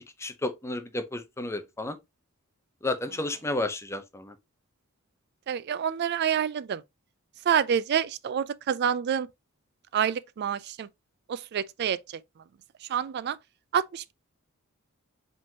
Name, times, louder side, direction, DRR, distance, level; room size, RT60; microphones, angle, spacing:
voice 1, 0.2-2.0 2.8-4.3, left 2 dB, 15° left, 0.6 m, -32 dB
voice 2, 5.5-6.8 7.5-9.3 9.9-10.9 11.3-12.2 12.9-13.4 13.7-14.1, right 8 dB, 50° right, 0.3 m, -27 dB
5.0 x 3.7 x 2.8 m
head